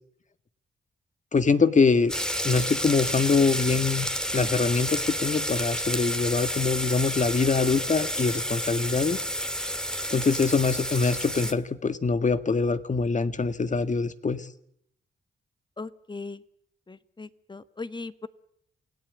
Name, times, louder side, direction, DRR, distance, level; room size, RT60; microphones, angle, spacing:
voice 1, 1.3-2.1 2.4-4.1 4.3-9.2 10.1-14.5, left 4 dB, 40° left, 11 dB, 1.7 m, -24 dB
sound 1, 2.1-11.5, equal, 5° left, 2.1 m, -30 dB
voice 2, 15.8-16.4 16.9-18.3, left 3 dB, 25° left, 13 dB, 1.4 m, -38 dB
28.0 x 17.5 x 8.2 m, 0.71 s
cardioid pair, 80°, 19 cm